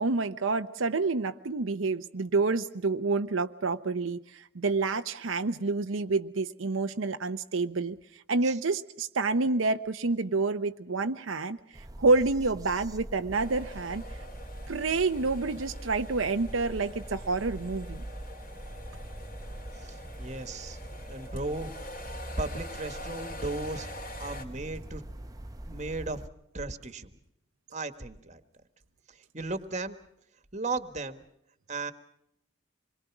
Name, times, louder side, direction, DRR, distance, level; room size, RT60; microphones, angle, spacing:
voice 1, 0.0-8.0 8.3-11.6 12.0-14.0 14.7-18.0, right 3 dB, 85° right, 7 dB, 0.8 m, -28 dB
sound 1, 11.7-26.3, right 1 dB, 20° right, 0.8 m, -43 dB
sound 2, 13.3-24.5, left 1 dB, 45° left, 3.1 m, -45 dB
voice 2, 19.8-20.8 21.1-21.7 22.4-25.0 25.7-26.2 26.5-27.1 27.7-28.4 29.1-30.0 30.5-31.2 31.7-31.9, right 3 dB, 35° right, 10 dB, 1.5 m, -36 dB
26.5 x 22.5 x 6.0 m, 0.77 s
head